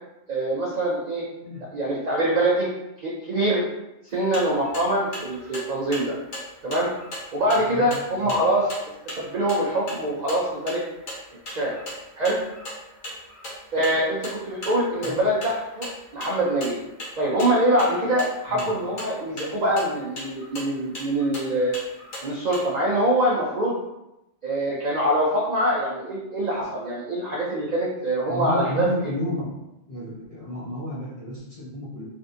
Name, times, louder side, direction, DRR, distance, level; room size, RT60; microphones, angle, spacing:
voice 1, 0.3-1.3 1.7-2.7 3.0-3.6 4.1-6.1 6.6-6.9 7.3-8.7 9.1-10.8 11.5-11.7 12.2-12.4 13.7-15.9 16.1-16.8 17.2-21.7 22.2-23.8 24.4-28.8, right 1 dB, 60° right, -5 dB, 0.4 m, -24 dB
sound 1, 4.1-22.7, equal, 80° left, 1.4 m, -39 dB
voice 2, 28.3-29.5 29.9-32.1, left 1 dB, 35° left, -7 dB, 0.6 m, -31 dB
3.4 x 2.5 x 2.6 m, 0.92 s
omnidirectional pair, 1.4 m